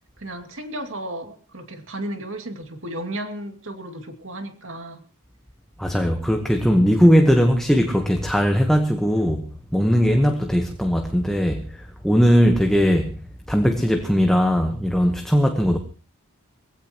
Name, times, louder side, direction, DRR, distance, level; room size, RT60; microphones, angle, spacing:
voice 1, 0.2-5.0, right 1 dB, 60° right, 2.6 m, -34 dB
voice 2, 5.8-9.4 9.7-11.6 12.0-13.2 13.5-15.8, equal, ahead, 1.2 m, -19 dB
22.5 x 16.5 x 3.1 m
head